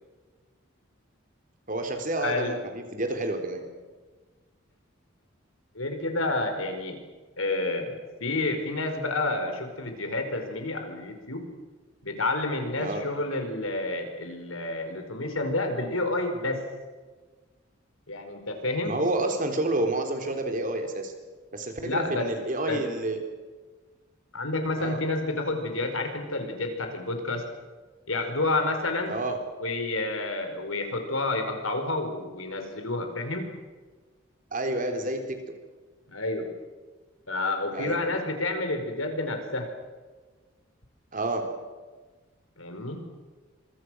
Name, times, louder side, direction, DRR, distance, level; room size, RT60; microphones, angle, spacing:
voice 1, 1.7-3.6 12.8-13.0 18.8-21.1 21.5-23.2 24.8-25.0 29.1-29.4 34.5-35.4 37.7-38.0 41.1-41.5, right 2 dB, 40° right, 5 dB, 3.8 m, -29 dB
voice 2, 2.2-2.5 5.7-7.0 7.4-11.4 12.0-16.6 18.1-18.9 21.8-22.3 22.7-22.8 24.3-27.4 28.1-29.1 29.6-33.5 36.1-36.5 37.3-39.7 42.6-43.0, left 2 dB, 90° left, 5 dB, 4.8 m, -29 dB
26.5 x 24.0 x 6.4 m, 1.3 s
head